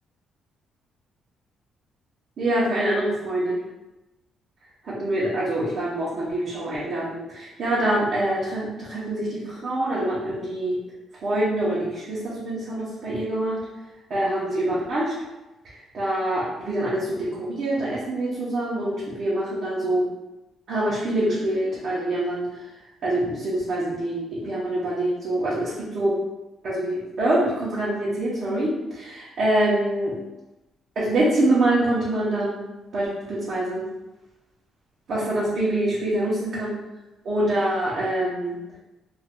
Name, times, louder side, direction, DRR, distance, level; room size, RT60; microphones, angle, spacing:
voice 1, 2.4-3.6 4.8-10.8 11.2-13.6 14.1-15.1 15.7-20.1 20.7-22.6 23.0-26.2 26.6-30.2 31.0-32.6 32.9-33.8 35.1-36.7 37.2-38.6, right 1 dB, 60° right, -8 dB, 0.8 m, -25 dB
2.6 x 2.3 x 3.6 m, 1.0 s
cardioid pair, 90°, 0 cm